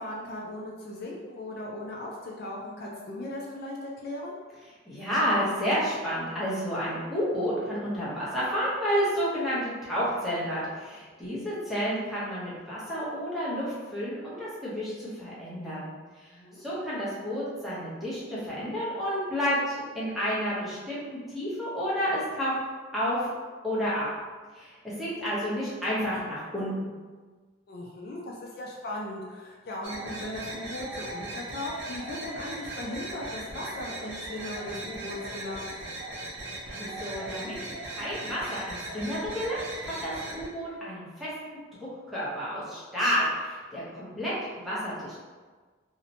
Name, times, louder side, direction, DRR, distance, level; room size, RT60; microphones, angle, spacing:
voice 1, 0.0-4.3 16.3-16.6 27.7-35.7, left 1 dB, 50° left, -2 dB, 0.3 m, -38 dB
voice 2, 4.9-15.9 16.2-22.5 22.9-23.3 23.6-24.0 24.5-26.9 36.6-41.6 42.1-45.2, equal, ahead, -10 dB, 0.7 m, -30 dB
sound 1, 29.8-40.5, right 2 dB, 60° right, 0.5 m, -38 dB
2.7 x 2.0 x 2.7 m, 1.4 s
head